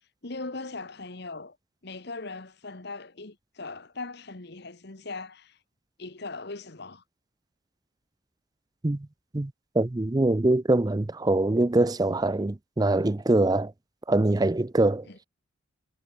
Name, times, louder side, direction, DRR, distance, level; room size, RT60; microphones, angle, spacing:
voice 1, 0.2-1.6 1.8-5.6 6.0-7.0 15.0-15.2, left 3 dB, 55° left, 1.4 m, -39 dB
voice 2, 9.8-13.7 14.1-15.0, right 2 dB, 20° right, 0.5 m, -23 dB
head